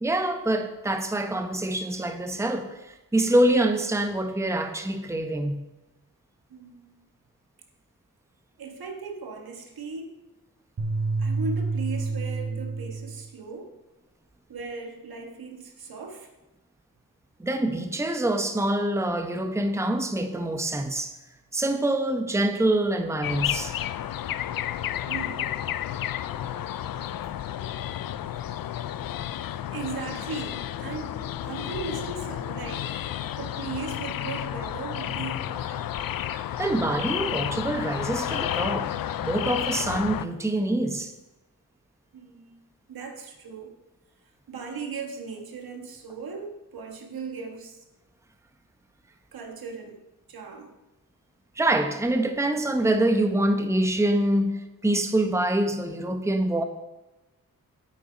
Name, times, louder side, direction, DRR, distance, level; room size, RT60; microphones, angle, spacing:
voice 1, 0.0-5.6 17.4-21.2 21.5-23.7 36.6-41.1 51.6-56.6, right 1 dB, 10° right, 0.9 m, -25 dB
voice 2, 6.5-6.9 8.6-10.2 11.2-13.7 14.5-16.3 25.1-25.7 29.5-33.0 33.3-35.8 42.1-42.6 42.9-43.7 44.5-47.8 49.3-50.0 50.3-50.7, right 4 dB, 75° right, 1.7 m, -38 dB
sound 1, 10.8-13.3, right 3 dB, 45° right, 1.4 m, -28 dB
sound 2, 23.2-40.2, left 11 dB, 70° left, 0.5 m, -31 dB
8.4 x 8.4 x 5.1 m
cardioid pair, 70°, 36 cm